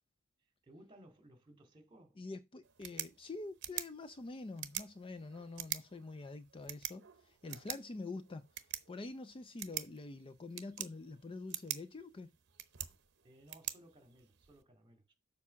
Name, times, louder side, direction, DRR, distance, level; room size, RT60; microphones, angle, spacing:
voice 1, 0.6-2.2 13.2-15.1, right 1 dB, 25° right, 2.2 m, -60 dB
voice 2, 2.2-8.5 8.9-12.3, left 3 dB, 25° left, 0.4 m, -46 dB
sound 1, 2.6-14.6, right 13 dB, 60° right, 0.8 m, -46 dB
7.4 x 4.7 x 5.6 m
head